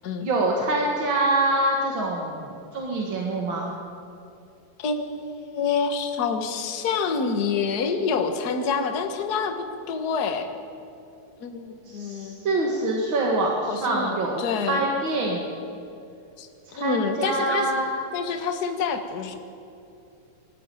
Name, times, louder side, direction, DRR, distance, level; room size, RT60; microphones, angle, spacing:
voice 1, 0.2-3.7 11.9-14.4 14.7-15.4 16.7-17.9, right 2 dB, 45° right, -1 dB, 2.1 m, -25 dB
voice 2, 4.8-10.5 11.4-12.4 13.7-14.1 14.4-14.9 16.4-17.7 18.1-19.3, left 5 dB, 50° left, 6 dB, 1.2 m, -27 dB
21.5 x 14.0 x 9.2 m, 2.7 s
omnidirectional pair, 3.9 m